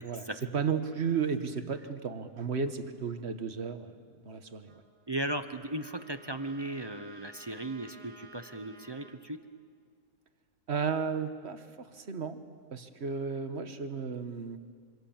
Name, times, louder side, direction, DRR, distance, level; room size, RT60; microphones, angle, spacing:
voice 1, 0.5-3.9 4.2-4.8 10.7-12.4 12.7-14.6, right 6 dB, 45° right, 9 dB, 1.5 m, -33 dB
Trumpet, 4.7-9.2, right 3 dB, 80° right, 2.7 m, -55 dB
voice 2, 5.1-9.4, right 1 dB, 25° right, 9 dB, 0.6 m, -36 dB
26.5 x 26.0 x 7.3 m, 2.1 s
omnidirectional pair, 1.7 m